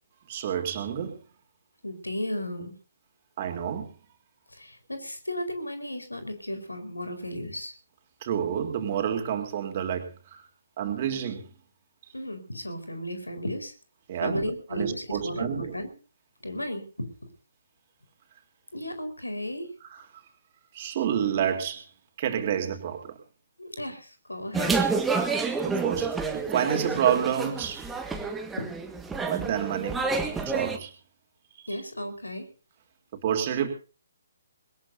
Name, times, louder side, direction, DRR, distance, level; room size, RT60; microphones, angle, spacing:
voice 1, 0.3-1.2 3.4-3.9 8.2-10.4 10.8-11.5 14.1-15.7 19.9-20.0 20.7-21.8 22.2-23.2 25.6-27.9 29.2-30.0 30.5-30.9 33.1-33.7, right 9 dB, 35° right, 4 dB, 3.5 m, -29 dB
voice 2, 1.8-2.8 4.5-7.7 12.1-13.7 14.2-15.9 16.4-17.3 18.7-19.7 23.6-24.8 28.6-28.7 31.7-32.5, left 1 dB, 80° left, 7 dB, 4.7 m, -34 dB
sound 1, 24.5-30.8, right 4 dB, 5° right, 1.7 m, -29 dB
21.5 x 20.0 x 2.8 m, 0.37 s
figure-of-eight pair, 135°, 0 cm